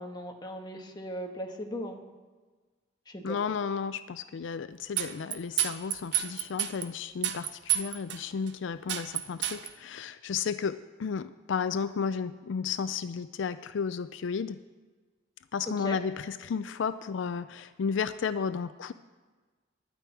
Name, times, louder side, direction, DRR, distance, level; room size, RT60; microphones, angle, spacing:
voice 1, 0.0-2.0 3.1-3.4 15.7-16.0, equal, 25° left, 3 dB, 1.3 m, -38 dB
voice 2, 3.2-14.6 15.5-18.9, left 6 dB, 80° left, 13 dB, 0.4 m, -33 dB
sound 1, 5.0-6.8 7.2-8.2 8.5-8.6 8.9-9.7, right 12 dB, 70° right, 0.8 m, -29 dB
12.5 x 6.2 x 9.2 m, 1.4 s
head